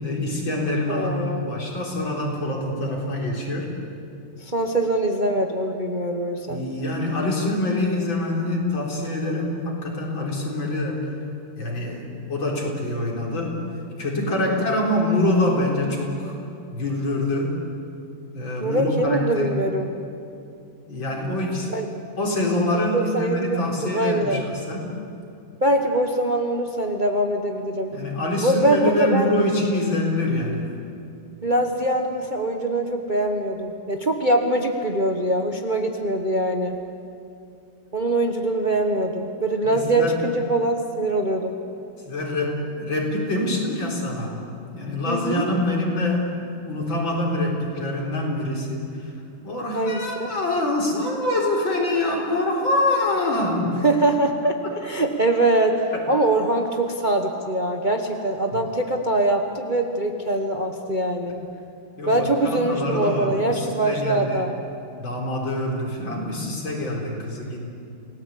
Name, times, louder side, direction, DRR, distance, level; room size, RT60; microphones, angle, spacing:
voice 1, 0.0-3.7 6.5-11.1 11.6-13.6 14.0-16.4 16.7-17.5 18.3-19.5 20.9-21.7 22.2-24.9 27.9-30.7 39.6-40.2 42.1-44.4 44.7-46.3 46.6-48.9 49.4-53.8 55.9-56.0 58.5-58.6 62.0-64.5 65.0-67.6, left 1 dB, 70° left, -1 dB, 4.7 m, -25 dB
voice 2, 0.9-1.5 4.4-6.6 14.5-14.6 18.6-19.9 21.7-21.9 22.9-24.4 25.6-27.9 28.4-29.3 31.4-36.8 37.9-41.6 45.0-45.5 49.7-50.3 53.8-61.4 62.1-64.5, right 1 dB, 25° right, 3 dB, 1.2 m, -23 dB
28.5 x 18.0 x 8.4 m, 2.5 s
omnidirectional pair, 2.2 m